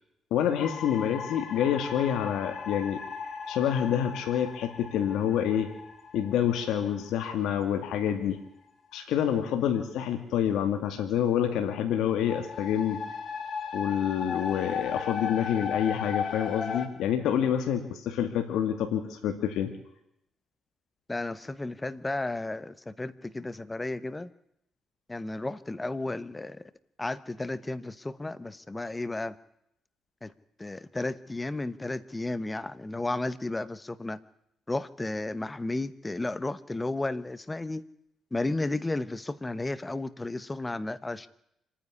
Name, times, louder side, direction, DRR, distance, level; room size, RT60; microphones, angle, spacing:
voice 1, 0.3-3.0 3.5-5.7 6.1-8.4 8.9-13.0 13.7-19.7, left 9 dB, 85° left, 5 dB, 2.1 m, -27 dB
sound 1, 0.6-8.2 12.2-16.9, left 6 dB, 50° left, 2.6 m, -36 dB
voice 2, 21.1-24.3 25.1-26.6 27.0-29.4 30.2-30.3 30.6-34.2 34.7-37.8 38.3-41.3, left 2 dB, 15° left, 15 dB, 1.0 m, -33 dB
26.5 x 10.0 x 9.7 m, 0.78 s
cardioid pair, 90°, 0 cm